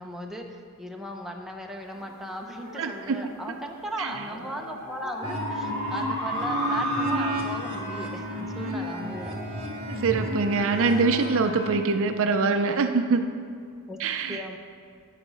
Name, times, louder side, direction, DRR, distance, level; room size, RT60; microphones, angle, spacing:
voice 1, 0.0-9.3 13.9-14.0 14.3-14.6, equal, ahead, 0 dB, 0.8 m, -37 dB
sound 1, 1.9-10.8, equal, 35° left, 2.1 m, -35 dB
voice 2, 2.8-3.3 4.0-4.2 9.9-13.3 14.0-14.4, right 4 dB, 60° right, 8 dB, 0.5 m, -24 dB
sound 2, 5.2-11.7, equal, 25° right, 1.7 m, -32 dB
10.0 x 7.5 x 5.5 m, 2.1 s
head